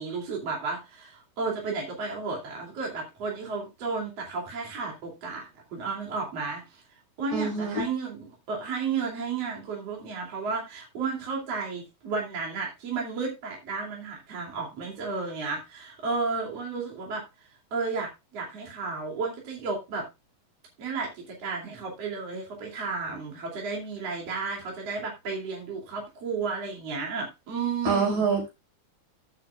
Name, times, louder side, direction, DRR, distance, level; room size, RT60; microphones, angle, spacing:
voice 1, 0.0-6.8 7.2-20.1 20.8-28.3, right 4 dB, 55° right, -1 dB, 3.7 m, -33 dB
voice 2, 7.3-7.9 27.8-28.5, right 4 dB, 80° right, 2 dB, 6.2 m, -25 dB
15.0 x 8.2 x 2.3 m, 0.24 s
omnidirectional pair, 3.5 m